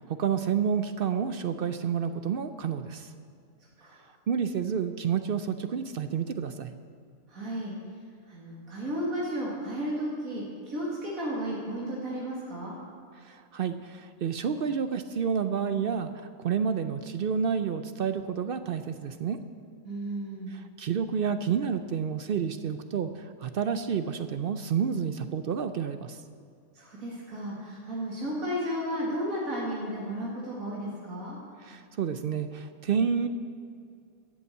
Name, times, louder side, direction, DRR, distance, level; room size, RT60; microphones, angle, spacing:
voice 1, 0.0-3.1 4.3-6.7 13.2-19.4 20.5-26.2 31.6-33.3, right 7 dB, 60° right, 10 dB, 0.6 m, -29 dB
voice 2, 7.3-7.8 8.3-12.8 19.8-20.6 26.7-31.4, equal, 85° right, -6 dB, 2.5 m, -33 dB
13.0 x 7.1 x 7.9 m, 2.4 s
omnidirectional pair, 1.4 m